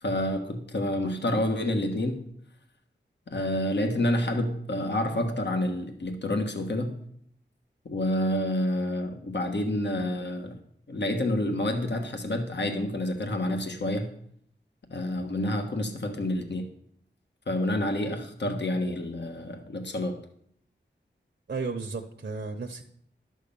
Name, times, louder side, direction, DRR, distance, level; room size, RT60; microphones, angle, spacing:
voice 1, 0.0-2.3 3.3-7.0 7.8-10.6 10.9-14.1 14.9-16.7 17.5-20.2, left 1 dB, 65° left, 5 dB, 1.4 m, -28 dB
voice 2, 21.5-22.9, right 4 dB, 60° right, 2 dB, 1.0 m, -34 dB
11.5 x 6.3 x 7.1 m, 0.66 s
wide cardioid pair, 55°, 19 cm